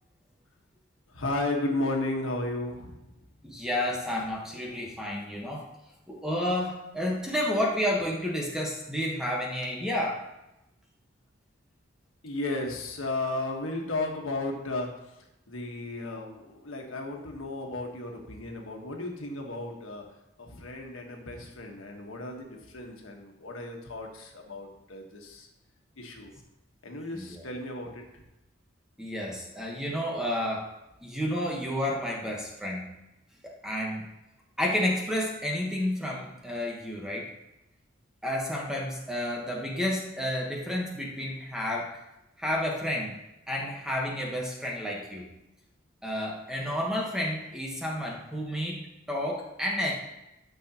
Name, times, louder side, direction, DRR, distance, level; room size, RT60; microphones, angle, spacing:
voice 1, 1.1-3.0 12.2-14.9 15.5-20.0 20.4-25.5 26.0-26.3 26.8-28.0, left 2 dB, 85° left, 1 dB, 1.4 m, -34 dB
voice 2, 3.4-5.6 6.1-10.2 27.1-27.4 29.0-30.7 31.0-32.9 33.4-34.1 34.6-37.3 38.2-42.0 42.4-43.2 43.5-45.3 46.0-48.8 49.1-49.9, left 1 dB, 5° right, -2 dB, 1.2 m, -30 dB
12.5 x 6.2 x 2.9 m, 0.93 s
head